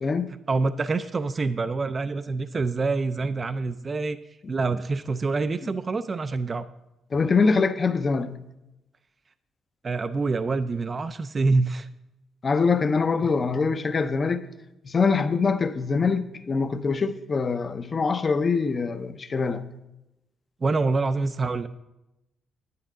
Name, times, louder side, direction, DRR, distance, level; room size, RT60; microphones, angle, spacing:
voice 1, 0.5-6.7 9.8-11.9 13.2-13.3 20.6-21.7, right 3 dB, 35° right, 0.3 m, -26 dB
voice 2, 7.1-8.4 12.4-14.4 14.8-19.7, left 4 dB, 35° left, 0.6 m, -24 dB
9.5 x 8.8 x 3.7 m
cardioid pair, 90°, 0 cm